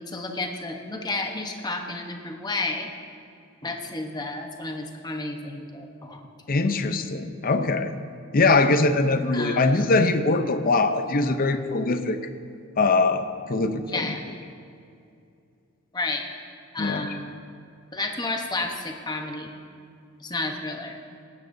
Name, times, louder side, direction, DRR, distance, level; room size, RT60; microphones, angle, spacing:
voice 1, 0.1-2.9 3.6-6.3 9.3-9.7 13.8-14.2 15.9-16.3 16.7-17.4 17.9-19.5 20.2-21.0, left 2 dB, 20° left, 3 dB, 0.9 m, -31 dB
voice 2, 6.5-8.0 8.3-12.2 12.8-14.1 16.8-17.1, left 3 dB, 45° left, 9 dB, 0.6 m, -22 dB
18.5 x 10.5 x 2.7 m, 2.5 s
head